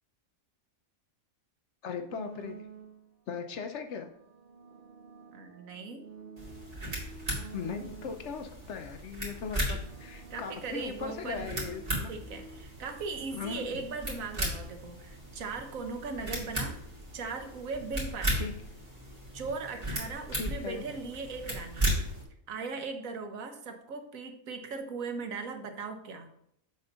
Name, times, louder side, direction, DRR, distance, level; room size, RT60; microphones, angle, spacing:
voice 1, 1.8-2.6 3.3-4.1 7.5-12.1 13.3-13.8 18.4-18.5 20.3-20.8, left 6 dB, 65° left, 7 dB, 0.8 m, -38 dB
sound 1, 2.1-3.2 4.0-8.5 9.2-12.6, right 5 dB, 45° right, 0.8 m, -50 dB
voice 2, 5.3-6.1 10.3-11.5 12.1-16.8 17.1-18.5 19.3-21.9 22.5-26.3, right 4 dB, 70° right, 6 dB, 1.3 m, -38 dB
sound 2, 6.4-22.2, right 1 dB, 25° right, 2.5 m, -36 dB
7.0 x 4.0 x 5.5 m, 0.72 s
omnidirectional pair, 1.5 m